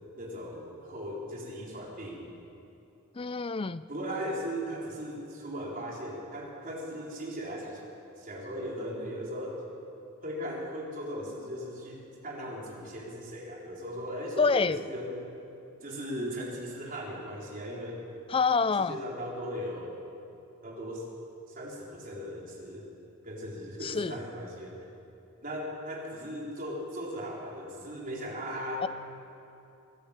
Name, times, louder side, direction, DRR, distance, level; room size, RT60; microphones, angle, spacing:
voice 1, 0.2-2.3 3.9-9.6 10.2-15.3 15.8-18.1 18.8-20.0 20.6-21.1 21.5-22.9 23.2-24.8 25.4-28.9, equal, 40° right, -3 dB, 4.2 m, -38 dB
voice 2, 3.2-3.8 14.4-14.8 18.3-19.0 23.8-24.2 28.8-28.9, left 4 dB, 25° left, 15 dB, 0.4 m, -27 dB
23.5 x 13.5 x 8.9 m, 2.7 s
head